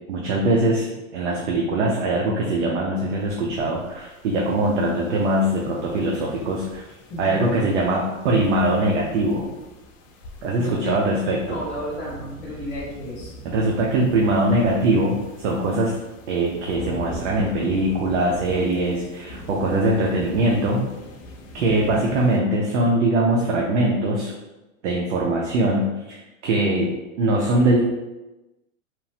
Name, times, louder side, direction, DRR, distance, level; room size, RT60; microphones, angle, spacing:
voice 1, 0.1-6.8 7.2-9.5 10.4-11.6 13.4-15.9 16.3-20.8 21.5-24.3 24.8-26.9 27.2-27.8, right 1 dB, 60° right, -2 dB, 0.6 m, -22 dB
sound 1, 3.1-22.4, left 1 dB, 70° left, 0.6 m, -41 dB
voice 2, 10.6-11.0 11.5-13.3 21.6-22.0, equal, 15° left, -8 dB, 0.4 m, -33 dB
2.9 x 2.1 x 2.8 m, 1.0 s
supercardioid pair, 160°, 41 cm